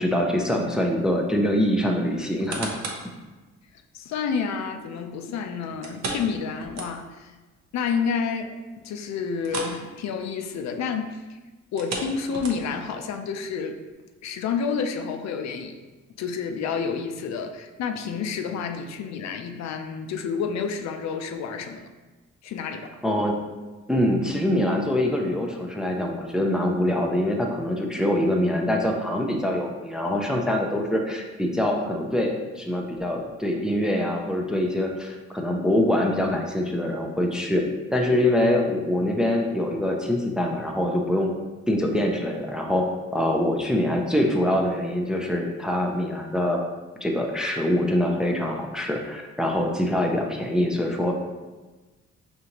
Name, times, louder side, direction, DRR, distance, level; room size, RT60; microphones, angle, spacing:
voice 1, 0.0-2.8 23.0-23.4 23.9-41.3 41.7-46.7 47.0-51.2, left 1 dB, ahead, 1 dB, 0.4 m, -24 dB
sound 1, 2.2-3.1 3.6-3.7 5.8-7.3 7.6-7.7 8.2-8.3 9.4-9.8 10.1-10.3 11.6-12.9 13.5-13.6, right 3 dB, 65° right, 0.7 m, -34 dB
voice 2, 3.9-7.3 7.7-11.4 11.7-13.8 14.2-15.8 16.2-21.9 22.4-22.9, left 6 dB, 65° left, 6 dB, 0.4 m, -29 dB
4.9 x 2.6 x 2.9 m, 1.2 s
cardioid pair, 105°, 29 cm